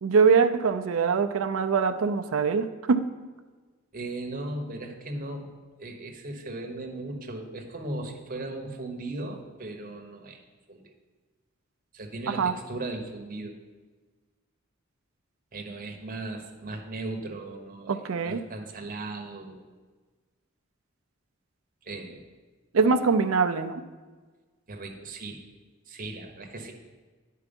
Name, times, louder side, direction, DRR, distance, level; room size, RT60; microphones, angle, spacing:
voice 1, 0.0-3.0 12.4-12.5 17.9-18.4 22.7-23.8, right 5 dB, 75° right, 8 dB, 0.5 m, -23 dB
voice 2, 3.9-5.5 5.8-10.4 10.7-10.9 11.9-13.5 15.5-19.6 21.8-22.2 22.8-22.9 24.7-25.4 25.9-26.7, right 2 dB, 45° right, 2 dB, 1.0 m, -37 dB
10.0 x 4.6 x 5.2 m, 1.4 s
head